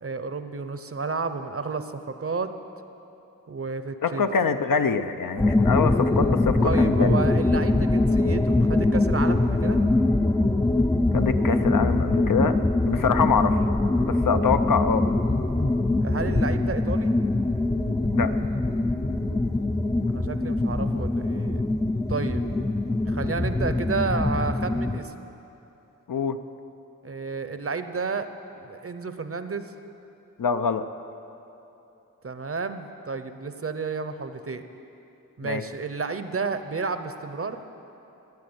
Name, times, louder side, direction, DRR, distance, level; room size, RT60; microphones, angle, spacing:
voice 1, 0.0-2.5 3.5-4.3 6.6-9.8 16.0-17.1 20.1-21.6 22.1-22.5 23.1-25.1 27.0-28.3 28.6-29.7 32.2-34.6 35.4-37.6, right 4 dB, 40° right, 9 dB, 0.7 m, -31 dB
voice 2, 4.0-7.2 11.1-12.6 12.8-13.6 14.0-15.1 18.1-18.3 26.1-26.4 30.4-30.8 35.4-35.6, left 6 dB, 70° left, 9 dB, 0.7 m, -24 dB
sound 1, 5.4-25.0, left 2 dB, 10° left, 0.3 m, -23 dB
14.5 x 9.4 x 7.9 m, 2.9 s
wide cardioid pair, 105°, 34 cm